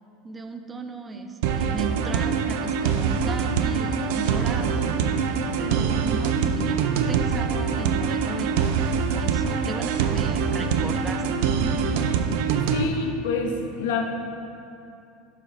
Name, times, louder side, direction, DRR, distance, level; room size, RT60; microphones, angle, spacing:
voice 1, 0.2-11.6, right 3 dB, 20° right, 6 dB, 0.7 m, -36 dB
sound 1, 1.4-12.8, right 6 dB, 70° right, 0.5 m, -24 dB
voice 2, 12.7-14.0, left 5 dB, 75° left, 3 dB, 1.0 m, -27 dB
12.0 x 7.4 x 2.7 m, 2.7 s
hypercardioid pair, 95°, 0 cm